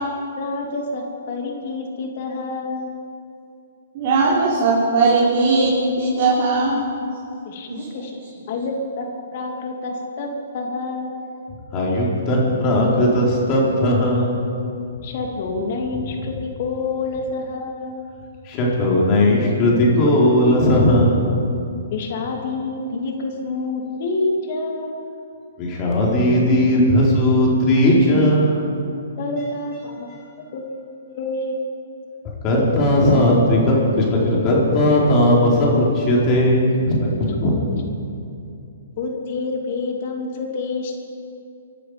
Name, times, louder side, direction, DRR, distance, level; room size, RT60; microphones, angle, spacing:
voice 1, 0.4-2.9 7.4-8.1 8.5-11.1 15.0-17.9 21.9-25.0 28.6-28.7 29.2-30.1 30.4-31.6 39.0-41.0, left 3 dB, 50° left, 2 dB, 2.5 m, -28 dB
voice 2, 3.9-6.8 7.7-7.8, right 3 dB, 45° right, -6 dB, 3.6 m, -18 dB
voice 3, 11.7-14.5 18.4-21.4 25.6-28.7 32.4-37.6, left 1 dB, 30° left, -4 dB, 4.5 m, -17 dB
24.0 x 12.0 x 5.1 m, 2.6 s
hypercardioid pair, 140°, 0 cm